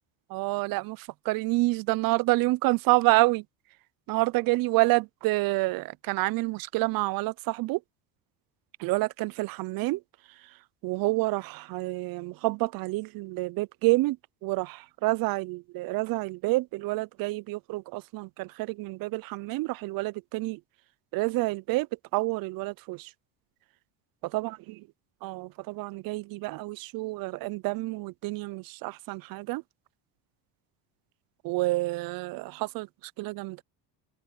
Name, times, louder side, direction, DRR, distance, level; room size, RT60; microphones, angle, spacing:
voice 1, 0.3-3.4 4.1-7.8 8.8-10.0 10.8-14.2 14.4-20.6 21.1-21.9 22.1-23.1 24.2-24.8 25.2-29.6 31.4-32.9 33.2-33.6, right 22 dB, 50° right, 0.5 m, -28 dB
cardioid pair, 110°, 45 cm